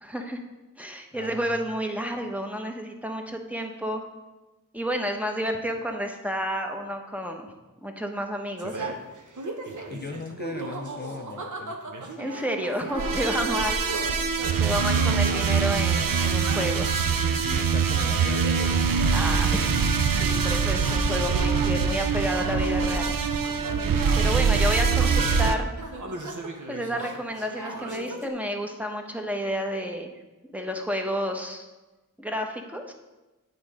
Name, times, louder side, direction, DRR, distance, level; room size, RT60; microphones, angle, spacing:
voice 1, 0.0-0.4 0.8-4.0 4.7-7.5 7.8-9.0 12.2-14.0 14.6-17.0 19.1-19.7 20.1-23.1 24.2-25.7 26.7-30.1 30.5-31.7 32.2-32.9, equal, 5° right, 3 dB, 0.9 m, -30 dB
voice 2, 1.1-1.8 9.9-11.8 14.8-15.3 17.4-18.7 24.2-24.9, left 4 dB, 30° left, 3 dB, 0.5 m, -39 dB
sound 1, 8.6-28.3, right 2 dB, 60° right, 0.9 m, -38 dB
sound 2, 12.9-25.5, right 5 dB, 75° right, 0.5 m, -24 dB
8.7 x 4.2 x 4.9 m, 1.1 s
wide cardioid pair, 45°, 34 cm